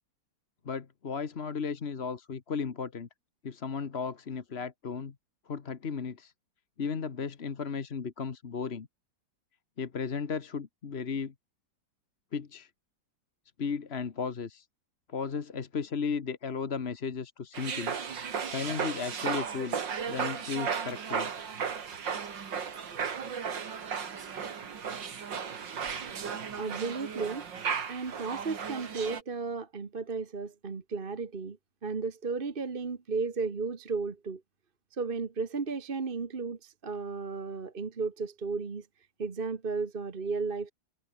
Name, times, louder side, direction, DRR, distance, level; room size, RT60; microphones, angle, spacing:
voice 1, 0.6-3.1 3.4-5.1 5.5-6.3 6.8-8.9 9.8-11.3 12.3-12.7 13.6-14.6 15.1-18.0 18.5-19.8 20.1-21.3, left 5 dB, 35° left, 1.4 m, -35 dB
sound 1, 17.5-29.2, right 6 dB, 70° right, 2.7 m, -35 dB
voice 2, 26.6-27.4 27.9-34.4 34.9-38.9 39.2-40.7, right 4 dB, 30° right, 1.3 m, -34 dB
omnidirectional pair, 2.1 m